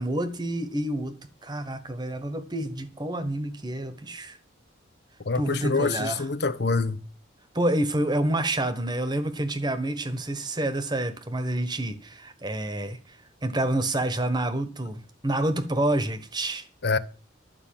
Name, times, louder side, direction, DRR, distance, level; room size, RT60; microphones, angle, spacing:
voice 1, 0.0-4.4 5.3-6.2 7.5-16.7, right 1 dB, 20° right, 1.2 m, -28 dB
voice 2, 5.2-7.0 16.8-17.0, left 4 dB, 55° left, 0.7 m, -25 dB
11.5 x 5.5 x 8.8 m
head